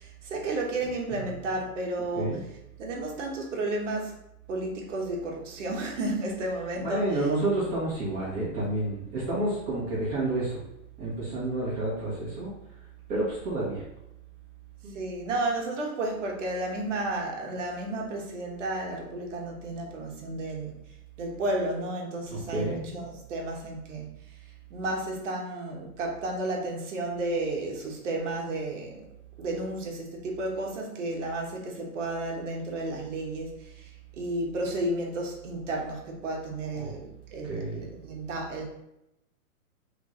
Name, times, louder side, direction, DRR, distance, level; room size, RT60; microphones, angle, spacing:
voice 1, 0.0-2.4 2.8-4.2 4.5-7.1 8.2-8.3 14.9-20.7 21.2-24.1 24.7-29.1 29.4-33.9 34.2-38.7, right 2 dB, 55° right, 0 dB, 1.3 m, -32 dB
voice 2, 6.8-10.6 11.0-12.5 13.1-13.8 14.8-14.9 22.3-22.8 36.6-36.9 37.4-37.7, right 2 dB, 20° right, -7 dB, 1.4 m, -30 dB
3.8 x 3.3 x 3.7 m, 0.84 s
hypercardioid pair, 155°, 44 cm